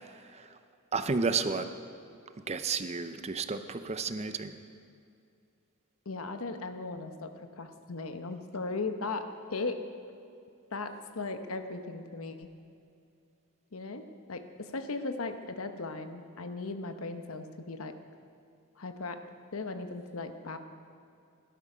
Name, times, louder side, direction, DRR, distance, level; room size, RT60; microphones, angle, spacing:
voice 1, 0.0-0.6 0.9-1.7 2.5-4.6, right 4 dB, 30° right, 10 dB, 0.6 m, -32 dB
voice 2, 6.1-9.8 10.7-12.5 13.7-14.0 14.3-17.9 18.8-19.2 19.5-20.6, left 3 dB, 70° left, 8 dB, 1.0 m, -37 dB
17.0 x 12.5 x 5.0 m, 2.5 s
head